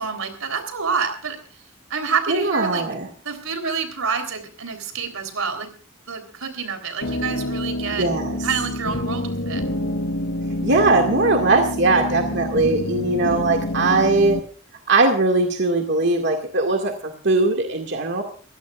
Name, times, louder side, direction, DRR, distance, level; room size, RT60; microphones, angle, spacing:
voice 1, 0.0-1.4 1.9-2.8 3.2-5.7 6.1-8.1 8.4-9.6, right 5 dB, 90° right, 7 dB, 3.8 m, -27 dB
voice 2, 2.3-3.1 8.0-8.4 10.6-14.4 14.9-18.2, right 3 dB, 55° right, 3 dB, 2.1 m, -20 dB
sound 1, 7.0-14.4, left 1 dB, 90° left, 1.3 m, -27 dB
24.5 x 16.0 x 2.5 m, 0.40 s
head